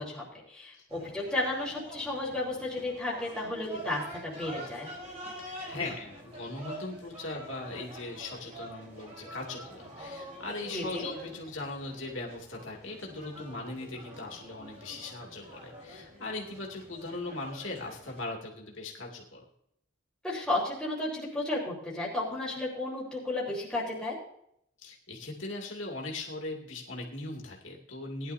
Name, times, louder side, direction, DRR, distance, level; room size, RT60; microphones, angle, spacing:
voice 1, 0.0-4.9 10.7-11.1 20.2-24.2, left 2 dB, 5° left, -6 dB, 3.8 m, -33 dB
sound 1, 0.9-18.2, right 1 dB, 35° right, 4.4 m, -46 dB
voice 2, 5.4-19.4 24.8-28.3, left 2 dB, 85° left, -1 dB, 2.5 m, -39 dB
19.0 x 11.0 x 2.7 m, 0.72 s
head